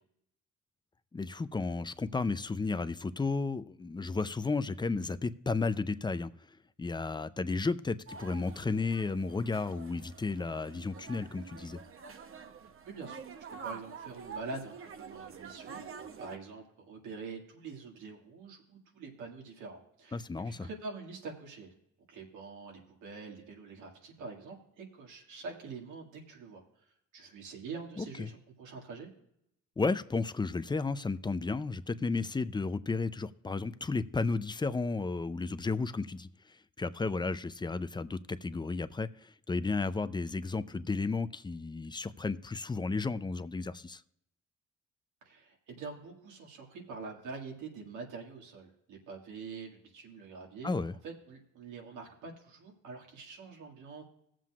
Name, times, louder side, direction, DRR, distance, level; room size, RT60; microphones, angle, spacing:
voice 1, 1.1-6.3 6.8-11.8 20.1-20.7 28.0-28.3 29.8-44.0 50.6-50.9, left 3 dB, 15° left, 13 dB, 0.5 m, -33 dB
sound 1, 8.1-16.4, right 6 dB, 45° right, 0.9 m, -47 dB
voice 2, 12.9-13.2 13.5-21.7 22.1-26.6 27.1-29.1 45.2-50.7 51.0-54.0, right 4 dB, 85° right, 0 dB, 2.1 m, -45 dB
18.0 x 7.5 x 2.4 m, 0.76 s
cardioid pair, 90°, 30 cm